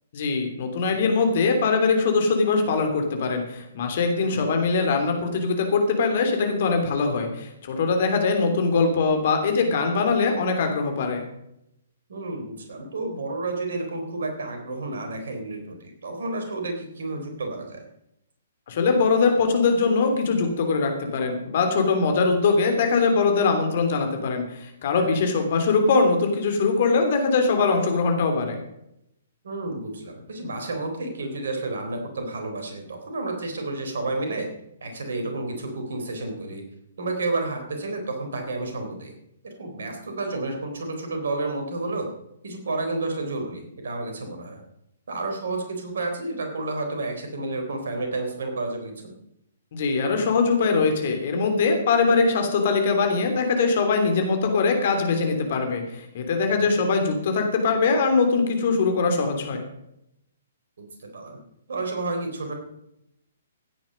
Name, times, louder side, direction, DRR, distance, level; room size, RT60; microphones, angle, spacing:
voice 1, 0.1-11.2 18.7-28.6 49.7-59.6, left 4 dB, 50° left, 5 dB, 3.2 m, -22 dB
voice 2, 12.1-17.8 24.9-25.2 29.4-34.5 34.8-36.6 37.0-39.1 39.4-42.1 42.4-44.6 45.1-49.1 56.6-56.8 60.8-61.4 61.7-62.5, right 2 dB, 60° right, 4 dB, 3.8 m, -31 dB
16.0 x 9.5 x 5.2 m, 0.81 s
figure-of-eight pair, 125°, 0 cm